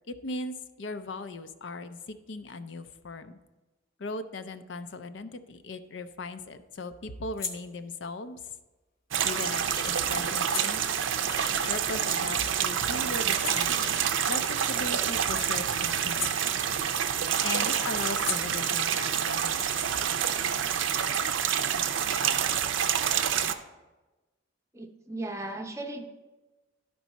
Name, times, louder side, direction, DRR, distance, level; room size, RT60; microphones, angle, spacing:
voice 1, 0.1-3.4 4.0-8.4 9.2-11.0 11.7-13.9 14.3-16.5 17.4-20.0, left 3 dB, 70° left, 10 dB, 0.5 m, -38 dB
sound 1, 5.6-12.5 12.9-17.1 17.4-20.8, left 4 dB, 50° left, 1.0 m, -43 dB
sound 2, 9.1-23.5, right 8 dB, 80° right, 0.5 m, -28 dB
sound 3, 9.5-15.4, left 1 dB, 20° left, 0.8 m, -47 dB
voice 2, 24.7-26.0, right 2 dB, 15° right, 4 dB, 0.7 m, -36 dB
12.0 x 4.6 x 4.1 m, 1.1 s
head